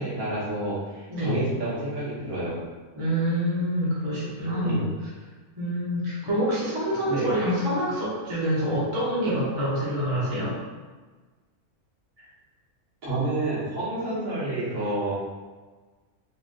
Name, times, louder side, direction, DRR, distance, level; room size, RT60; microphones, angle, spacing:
voice 1, 0.0-2.5 4.6-4.9 7.0-7.3 12.2-12.3 13.0-15.1, right 1 dB, 65° right, -10 dB, 1.6 m, -29 dB
voice 2, 3.0-4.8 5.5-10.5, equal, 25° right, -9 dB, 0.8 m, -26 dB
3.5 x 2.5 x 2.5 m, 1.4 s
omnidirectional pair, 1.6 m